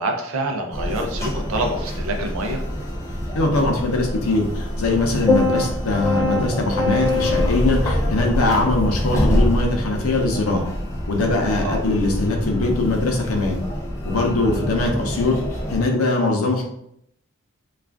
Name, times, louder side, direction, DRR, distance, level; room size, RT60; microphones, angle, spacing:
voice 1, 0.0-2.6 11.6-11.8, right 2 dB, 80° right, 3 dB, 0.5 m, -26 dB
sound 1, 0.7-15.8, left 1 dB, 15° left, 0.4 m, -25 dB
voice 2, 3.3-10.7 11.1-13.6 14.0-15.4 15.7-16.6, left 2 dB, 85° left, 1 dB, 0.6 m, -21 dB
2.4 x 2.4 x 3.4 m, 0.74 s
head